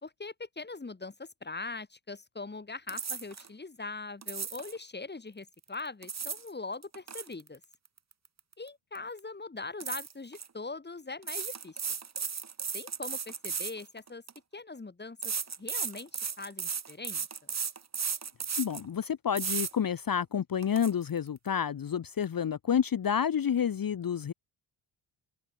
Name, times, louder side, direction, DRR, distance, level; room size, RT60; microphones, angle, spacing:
voice 1, 0.0-7.6 8.6-11.8 12.7-14.2 14.5-15.3 15.6-17.3, left 3 dB, 20° left, 4.0 m, -41 dB
sound 1, 2.9-3.5 4.2-4.8 5.8-6.5 6.8-8.7 9.0-9.2 9.8-10.5 11.2-14.4 15.2-18.9 19.4-19.7 20.2-20.3 20.6-20.9, right 6 dB, 30° right, 1.5 m, -35 dB
voice 2, 18.6-24.3, left 8 dB, 45° left, 1.2 m, -29 dB
open air
wide cardioid pair, 140°, 50 cm